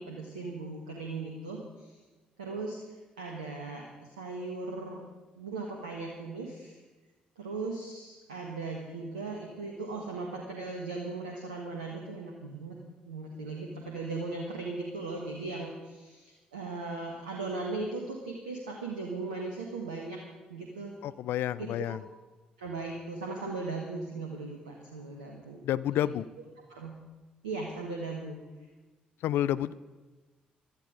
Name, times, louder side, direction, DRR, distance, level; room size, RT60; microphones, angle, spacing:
voice 1, 0.0-2.0 2.4-5.1 5.3-6.8 7.4-12.8 13.1-20.2 20.5-21.0 21.6-22.0 22.6-25.6 25.9-26.0 26.7-27.0 27.4-28.4, right 3 dB, 90° right, 1 dB, 1.5 m, -38 dB
voice 2, 21.0-22.0 25.6-26.3 29.2-29.7, left 12 dB, 65° left, 17 dB, 0.5 m, -29 dB
16.5 x 13.0 x 5.1 m, 1.2 s
hypercardioid pair, 45°, 4 cm